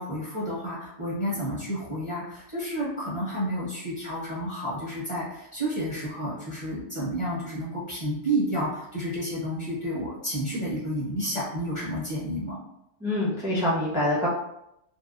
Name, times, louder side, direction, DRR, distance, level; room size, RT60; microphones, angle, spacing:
voice 1, 0.0-12.6, equal, 30° left, -7 dB, 0.7 m, -30 dB
voice 2, 13.0-14.3, left 1 dB, 5° right, -8 dB, 0.4 m, -25 dB
2.7 x 2.1 x 2.3 m, 0.81 s
omnidirectional pair, 1.2 m